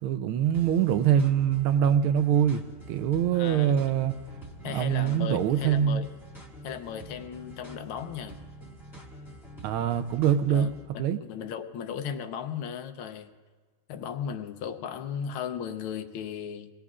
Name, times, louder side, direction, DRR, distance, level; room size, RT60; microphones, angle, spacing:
voice 1, 0.0-2.6 2.9-4.2 4.6-6.0 9.6-10.7 11.0-11.2, right 9 dB, 80° right, 10 dB, 1.6 m, -24 dB
sound 1, 0.5-10.9, right 1 dB, ahead, 1.6 m, -46 dB
voice 2, 3.3-3.7 4.6-6.1 6.6-8.4 10.5-13.3 13.9-16.7, left 8 dB, 80° left, 8 dB, 1.7 m, -36 dB
24.0 x 17.5 x 2.4 m, 1.4 s
omnidirectional pair, 2.3 m